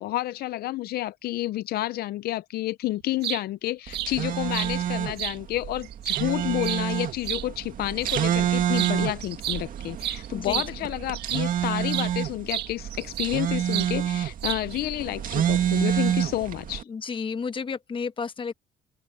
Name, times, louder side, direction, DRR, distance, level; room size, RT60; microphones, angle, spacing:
voice 1, 0.0-16.9, left 16 dB, 65° left, 0.5 m, -30 dB
sound 1, 3.0-3.4 3.9-4.1 4.5-4.7 5.2-5.4 5.8-7.4 8.0-8.3 8.7-9.0 9.2-11.5 11.9-12.1 12.5-13.4 13.7-13.9 14.4-14.8, right 14 dB, 75° right, 1.7 m, -31 dB
sound 2, 3.9-16.8, right 10 dB, 55° right, 2.1 m, -28 dB
voice 2, 10.3-10.7 16.9-18.5, left 5 dB, 30° left, 1.1 m, -32 dB
open air
cardioid pair, 110°, 17 cm